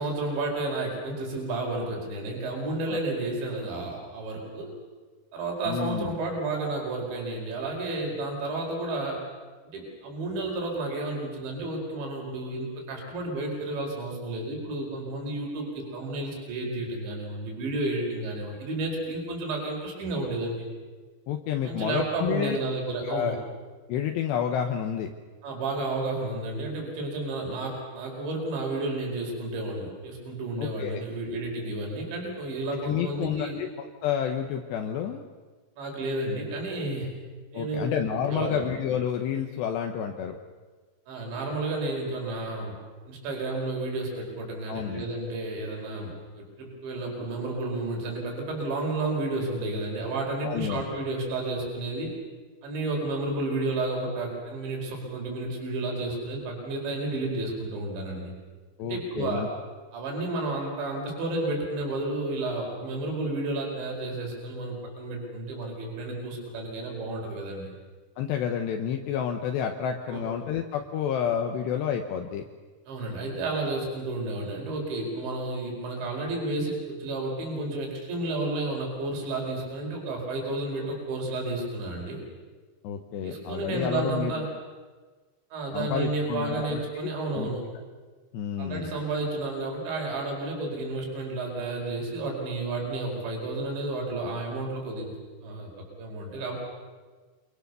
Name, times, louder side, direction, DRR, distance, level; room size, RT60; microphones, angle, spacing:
voice 1, 0.0-4.7 5.3-9.2 9.7-20.7 21.6-23.4 25.4-33.6 35.8-37.1 37.5-37.9 38.3-38.7 41.1-42.7 43.1-52.1 52.6-58.3 58.8-59.5 59.9-67.7 70.1-70.3 72.9-82.2 83.2-84.5 85.5-87.6 88.6-95.1 95.4-95.7 96.0-96.6, right 2 dB, 75° right, 0 dB, 7.0 m, -31 dB
voice 2, 5.7-6.2 21.3-22.6 23.0-23.4 23.9-25.1 30.6-31.0 32.8-35.2 37.5-40.4 44.7-45.0 50.4-50.8 58.8-59.5 68.2-72.4 82.8-84.3 85.7-87.1 87.4-87.5 88.3-88.9, left 8 dB, 75° left, 4 dB, 3.2 m, -30 dB
27.5 x 24.5 x 6.9 m, 1.4 s
omnidirectional pair, 5.3 m